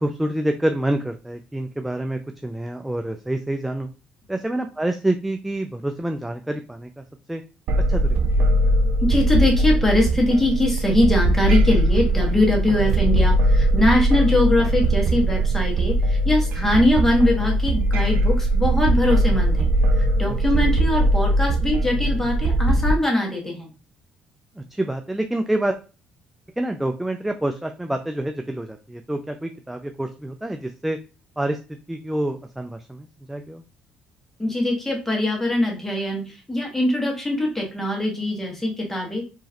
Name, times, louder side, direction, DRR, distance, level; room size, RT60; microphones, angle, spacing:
voice 1, 0.0-3.9 4.3-7.4 7.9-8.6 20.3-20.7 24.6-25.8 26.6-31.0 31.4-31.6 31.9-33.6, right 1 dB, 5° right, 6 dB, 0.4 m, -27 dB
sound 1, 7.7-22.9, right 1 dB, 75° right, 0.5 m, -20 dB
voice 2, 9.0-19.7 20.0-23.7 34.4-39.2, left 1 dB, 10° left, 0 dB, 1.6 m, -22 dB
4.6 x 3.1 x 2.9 m, 0.33 s
cardioid pair, 100°, 3 cm